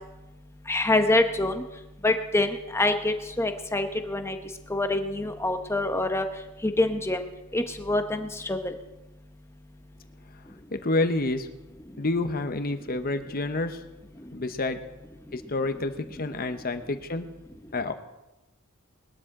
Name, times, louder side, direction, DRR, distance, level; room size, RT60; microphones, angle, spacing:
voice 1, 0.7-1.6 2.0-4.4 4.7-6.2 6.6-7.2 7.5-8.7, left 2 dB, 10° left, 7 dB, 0.9 m, -25 dB
voice 2, 10.7-11.5 12.0-13.8 14.3-14.8 15.3-15.9 16.2-17.3 17.7-17.9, left 2 dB, 40° left, 9 dB, 0.9 m, -28 dB
20.5 x 12.5 x 3.8 m, 1.0 s
head